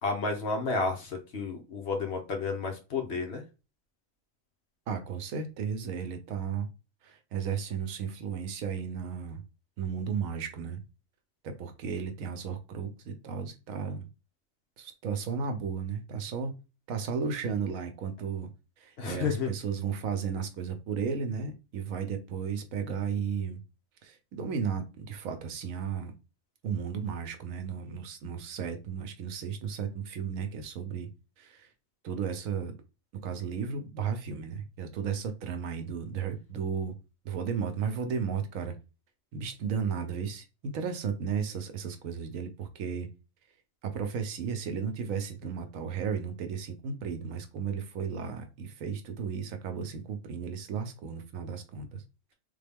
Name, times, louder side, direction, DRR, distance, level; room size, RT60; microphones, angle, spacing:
voice 1, 0.0-3.4 19.0-19.5, left 4 dB, 55° left, 2 dB, 1.0 m, -31 dB
voice 2, 4.9-6.7 7.0-9.4 9.8-10.8 11.4-14.1 14.8-16.5 16.9-18.5 18.8-23.6 24.0-26.1 26.6-31.1 31.4-31.7 32.0-32.7 33.2-36.9 37.2-38.7 39.3-43.1 43.8-52.0, right 6 dB, 85° right, 7 dB, 1.1 m, -34 dB
3.6 x 2.3 x 3.4 m, 0.30 s
omnidirectional pair, 1.4 m